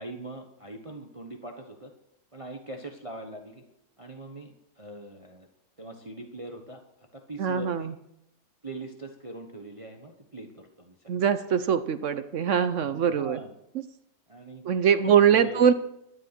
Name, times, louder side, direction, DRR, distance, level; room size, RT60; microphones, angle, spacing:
voice 1, 0.0-1.9 2.3-3.6 4.0-5.5 5.8-6.8 7.1-7.9 8.6-11.3 12.8-13.5 14.3-14.6 15.0-15.7, right 1 dB, 25° right, 4 dB, 1.1 m, -41 dB
voice 2, 7.4-7.9 11.1-13.4 14.6-15.7, right 8 dB, 60° right, 12 dB, 0.9 m, -22 dB
12.5 x 10.5 x 6.0 m, 0.80 s
omnidirectional pair, 1.7 m